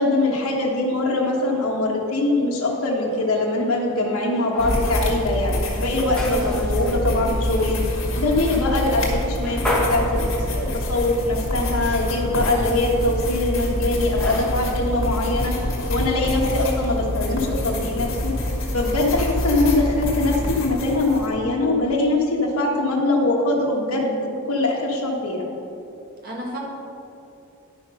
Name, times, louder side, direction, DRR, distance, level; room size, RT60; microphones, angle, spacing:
voice 1, 0.0-18.3 18.7-24.2 24.5-25.5, left 2 dB, 75° left, -3 dB, 1.3 m, -22 dB
sound 1, 2.6-16.3, left 1 dB, 5° left, 1.1 m, -35 dB
sound 2, 4.6-21.3, left 1 dB, 60° left, 1.8 m, -26 dB
voice 2, 26.2-26.6, right 1 dB, 40° right, -3 dB, 1.9 m, -32 dB
11.0 x 6.0 x 5.3 m, 2.7 s
head